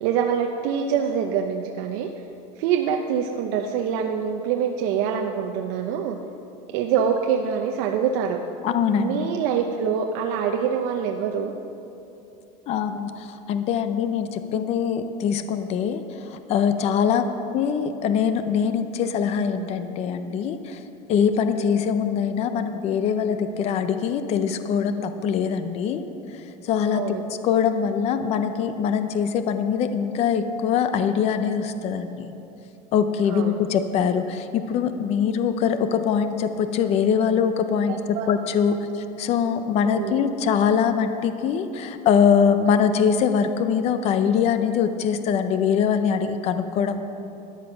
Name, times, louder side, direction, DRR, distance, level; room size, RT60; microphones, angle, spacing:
voice 1, 0.0-2.1 2.6-6.2 6.7-8.4 9.0-11.5 17.1-17.2 26.9-27.2 33.3-33.6 38.1-38.3 39.8-40.2, right 7 dB, 65° right, 3 dB, 0.7 m, -25 dB
voice 2, 8.6-9.3 12.7-20.8 21.1-26.1 26.3-32.3 32.9-47.0, left 7 dB, 35° left, 9 dB, 0.6 m, -23 dB
13.5 x 9.9 x 6.0 m, 2.9 s
cardioid pair, 165°, 19 cm